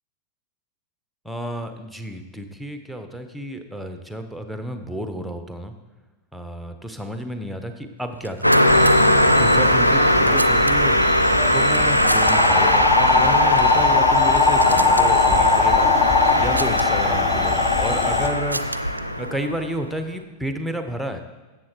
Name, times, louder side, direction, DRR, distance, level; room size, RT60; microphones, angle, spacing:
voice 1, 1.2-5.7 6.3-8.7 9.4-11.0 11.5-18.6 19.2-21.2, right 1 dB, ahead, 7 dB, 1.1 m, -31 dB
sound 1, 8.1-8.9 9.8-11.0 11.7-12.3 12.6-12.8 13.5-13.7 14.1-15.1 16.2-16.9 17.9-19.0, right 2 dB, 85° right, 0.6 m, -33 dB
Car passing by, 8.4-19.9, equal, 90° left, 0.6 m, -20 dB
sound 2, 8.7-18.3, left 4 dB, 30° left, 1.5 m, -21 dB
14.0 x 8.0 x 4.6 m, 1.2 s
figure-of-eight pair, 90°, 0 cm